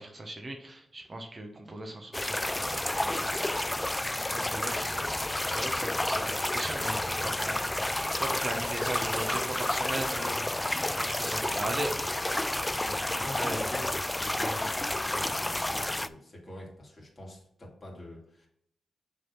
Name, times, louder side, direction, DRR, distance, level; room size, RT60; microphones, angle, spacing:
voice 1, 0.0-3.4 4.3-10.7 10.9-12.0 13.1-13.6, right 1 dB, 35° right, 3 dB, 1.2 m, -38 dB
sound 1, 2.1-16.1, left 1 dB, 15° left, 0.3 m, -30 dB
voice 2, 12.9-18.5, left 1 dB, 35° left, -2 dB, 2.8 m, -44 dB
6.5 x 3.9 x 6.0 m, 0.70 s
cardioid pair, 70°, 0 cm